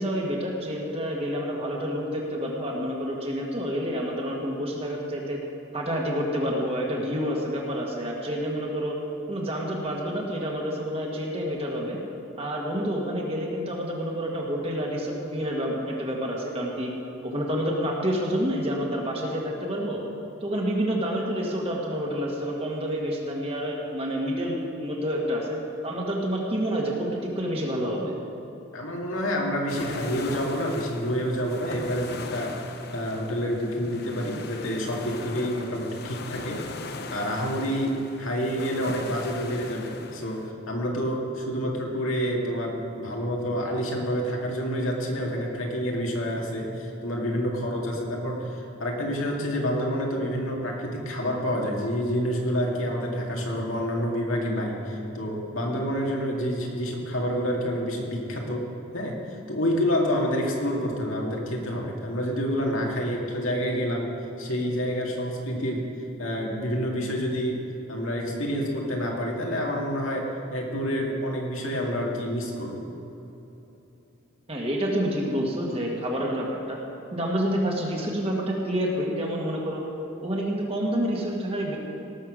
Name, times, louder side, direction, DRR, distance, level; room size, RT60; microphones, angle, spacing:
voice 1, 0.0-5.4 5.7-9.0 9.3-12.0 12.4-16.9 17.2-20.0 20.4-28.1 74.5-76.8 77.1-79.8 80.2-81.8, equal, 30° right, -1 dB, 1.7 m, -28 dB
voice 2, 28.7-32.6 32.9-36.6 37.1-58.6 58.9-64.1 64.4-65.9 66.2-67.6 67.9-72.8, equal, 80° left, -1 dB, 2.2 m, -28 dB
sound 1, 29.7-40.5, left 3 dB, 50° left, 0.8 m, -39 dB
18.0 x 6.9 x 6.3 m, 3.0 s
head